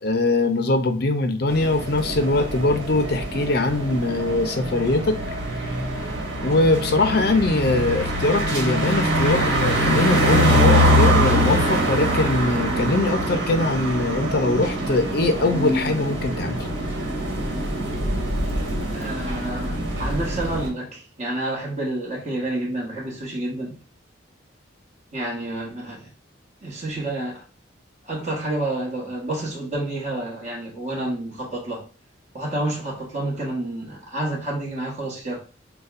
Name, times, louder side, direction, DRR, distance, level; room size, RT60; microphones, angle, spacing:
voice 1, 0.0-5.2 6.4-16.6, left 2 dB, 55° left, 0.5 m, -22 dB
sound 1, 1.5-20.7, equal, 65° right, 1.5 m, -23 dB
voice 2, 18.9-23.8 25.1-26.1 26.6-27.4 28.0-31.8 32.3-35.4, right 1 dB, 35° right, 1.4 m, -29 dB
6.5 x 2.3 x 2.5 m
head